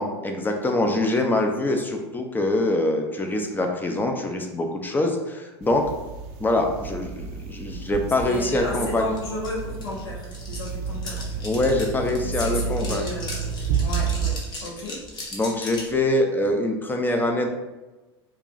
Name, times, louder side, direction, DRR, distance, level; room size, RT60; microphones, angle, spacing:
voice 1, 0.0-5.9 6.4-9.1 11.4-13.1 15.3-17.5, left 1 dB, 15° left, 3 dB, 0.6 m, -24 dB
sound 1, 5.6-14.4, right 6 dB, 55° right, 0.6 m, -31 dB
voice 2, 8.2-11.4 12.0-13.5 13.8-15.0, left 2 dB, 70° left, -4 dB, 1.2 m, -34 dB
sound 2, 9.2-9.3 9.4-15.9, left 2 dB, 30° left, 1.1 m, -37 dB
4.7 x 2.6 x 2.5 m, 1.1 s
hypercardioid pair, 85°, 14 cm